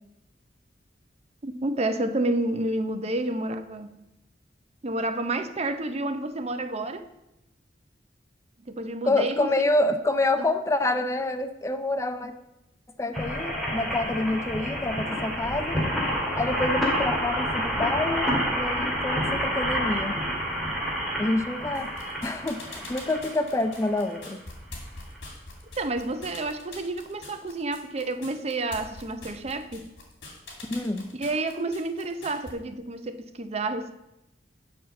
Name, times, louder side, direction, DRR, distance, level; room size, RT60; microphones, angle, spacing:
voice 1, 1.4-4.1 4.8-7.0 8.7-9.6 10.4-10.5 25.8-29.9 31.1-33.9, right 2 dB, 35° right, 0.6 m, -30 dB
voice 2, 9.0-12.3 13.0-15.8 16.4-20.2 21.2-21.9 22.2-24.4 30.7-31.1, left 2 dB, 15° left, 0.4 m, -27 dB
sound 1, 13.1-24.3 24.9-25.0 25.2-25.3, equal, ahead, 2.1 m, -29 dB
sound 2, 21.7-32.5, left 2 dB, 70° left, 2.5 m, -44 dB
7.0 x 5.6 x 7.4 m
head